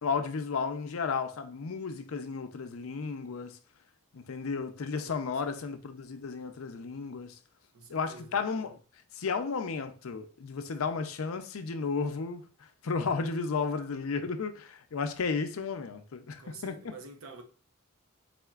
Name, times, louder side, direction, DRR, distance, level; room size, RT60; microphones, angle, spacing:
voice 1, 0.0-3.6 4.1-7.4 7.9-8.8 9.1-16.8, left 5 dB, 85° left, 0.5 m, -33 dB
voice 2, 5.0-5.8 7.7-8.4 16.4-17.4, right 3 dB, 85° right, 0.8 m, -49 dB
4.2 x 3.7 x 2.4 m
head